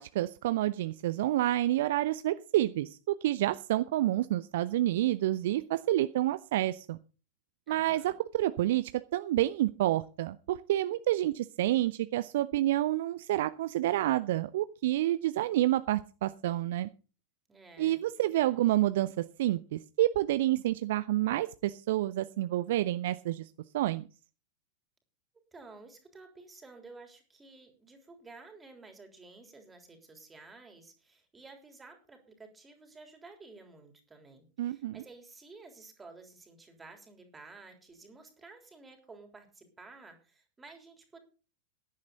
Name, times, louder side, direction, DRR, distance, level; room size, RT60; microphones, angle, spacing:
voice 1, 0.0-7.0 7.7-16.9 17.8-23.5 23.7-24.0 34.6-35.0, right 14 dB, 55° right, 13 dB, 0.5 m, -29 dB
voice 2, 7.7-8.2 17.5-18.6 25.5-41.2, right 3 dB, 15° right, 4 dB, 3.5 m, -53 dB
16.0 x 10.5 x 3.9 m, 0.35 s
figure-of-eight pair, 90°, 0 cm